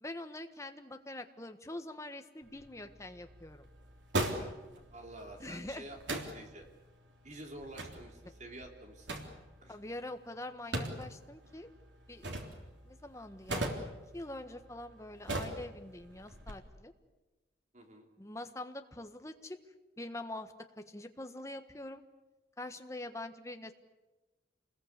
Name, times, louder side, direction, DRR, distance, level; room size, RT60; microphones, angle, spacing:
voice 1, 0.0-3.6 5.4-5.9 9.7-11.7 12.1-12.3 12.9-13.7 14.1-16.9 18.2-19.6 20.0-22.0 22.6-23.7, left 1 dB, 15° left, 7 dB, 1.4 m, -44 dB
sound 1, 2.4-16.5, right 1 dB, 85° right, 3.5 m, -41 dB
voice 2, 4.9-6.0 6.3-6.7 7.2-9.1 9.6-9.8 17.7-18.1, right 1 dB, 40° right, 3 dB, 3.5 m, -49 dB
28.0 x 20.5 x 8.3 m, 1.1 s
head